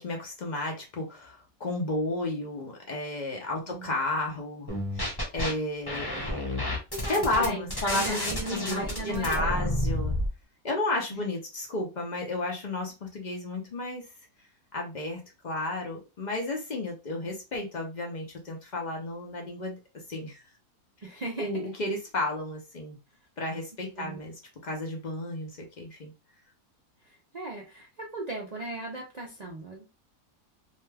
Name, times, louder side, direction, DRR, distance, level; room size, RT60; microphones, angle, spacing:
voice 1, 0.0-6.4 7.0-8.8 9.0-10.1 10.6-14.1 14.7-19.8 20.1-20.4 21.4-23.0 23.4-24.3 24.6-26.1, left 2 dB, 55° left, 1 dB, 0.5 m, -32 dB
sound 1, 4.7-5.5 5.9-10.3, left 1 dB, 20° left, 0.8 m, -30 dB
voice 2, 7.2-9.8 21.0-21.5 24.0-24.2 27.0-29.9, right 2 dB, 65° right, -2 dB, 0.4 m, -38 dB
2.7 x 2.2 x 3.2 m, 0.28 s
omnidirectional pair, 1.6 m